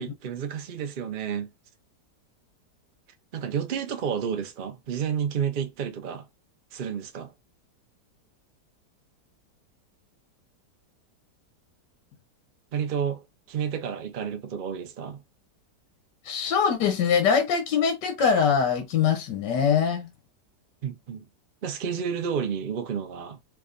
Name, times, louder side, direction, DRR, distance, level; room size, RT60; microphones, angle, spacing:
voice 1, 0.0-1.5 3.3-6.2 6.7-7.3 12.7-15.2 20.8-21.3 21.6-23.4, right 7 dB, 70° right, 0.5 m, -31 dB
voice 2, 16.2-20.1, left 6 dB, 75° left, 1.5 m, -23 dB
4.6 x 2.5 x 2.5 m
omnidirectional pair, 1.8 m